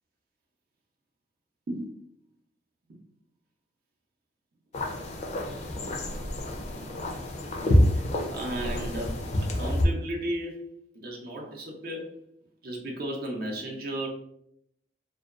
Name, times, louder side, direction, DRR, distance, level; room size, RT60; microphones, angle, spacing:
sound 1, 4.7-9.9, left 1 dB, 40° left, 0.4 m, -27 dB
voice 1, 8.3-10.6 10.9-12.1 12.6-14.1, right 1 dB, 60° right, -1 dB, 0.5 m, -34 dB
2.5 x 2.2 x 2.3 m, 0.74 s
head